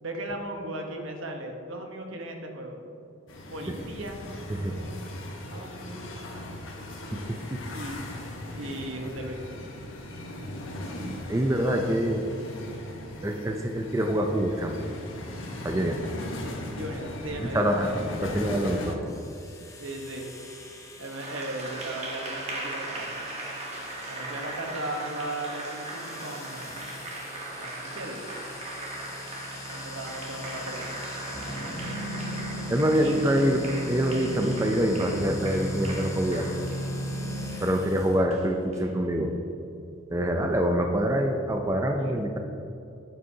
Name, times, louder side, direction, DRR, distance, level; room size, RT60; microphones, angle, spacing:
voice 1, 0.0-2.9 3.5-4.2 4.5-5.2 5.5-6.8 7.7-8.0 8.6-9.4 16.7-18.0 19.8-20.3 21.0-23.1 24.1-26.9 27.6-28.2 29.7-31.0 31.3-32.4 33.0-33.6 40.2-40.6 42.0-42.3, right 1 dB, 75° right, 3 dB, 1.1 m, -37 dB
sound 1, 3.3-19.0, left 1 dB, 75° left, 1.2 m, -38 dB
voice 2, 10.9-12.2 13.2-14.8 15.6-16.0 17.4-19.0 32.7-33.6 33.9-36.5 37.6-39.3 40.1-42.4, equal, 15° right, 3 dB, 0.4 m, -25 dB
sound 2, 19.0-38.1, left 1 dB, 15° left, 0.8 m, -38 dB
Applause, 21.0-38.8, right 2 dB, 30° right, 1.2 m, -39 dB
9.1 x 9.0 x 2.8 m, 2.7 s
head